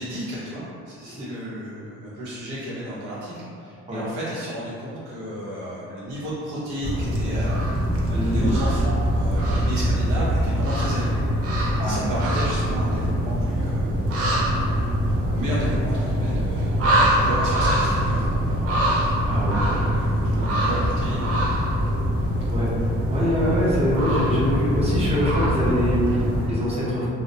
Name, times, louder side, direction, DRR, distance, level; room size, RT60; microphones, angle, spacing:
voice 1, 0.0-7.8 8.1-11.2 11.8-13.9 15.2-18.3 19.9-21.3 23.1-23.5, equal, 80° right, -9 dB, 0.8 m, -32 dB
sound 1, 6.8-26.5, equal, 50° right, 0.5 m, -23 dB
voice 2, 8.1-8.5 11.8-12.1 14.7-14.8 19.3-20.0 22.5-22.7 23.1-27.1, equal, 20° right, -8 dB, 0.8 m, -24 dB
2.4 x 2.0 x 2.7 m, 2.4 s
cardioid pair, 90°, 30 cm